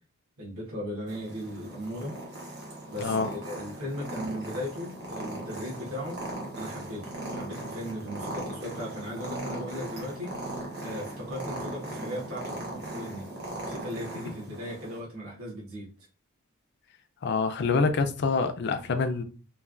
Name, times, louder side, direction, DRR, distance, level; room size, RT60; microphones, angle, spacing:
voice 1, 0.4-2.1 2.9-6.2 6.5-10.3 10.8-13.2 13.6-15.9, equal, 70° right, 1.1 m, -37 dB
Purr, 1.1-15.0, right 1 dB, 50° right, 1.1 m, -38 dB
voice 2, 17.2-19.2, left 4 dB, 50° left, 0.4 m, -26 dB
3.2 x 2.2 x 2.4 m
head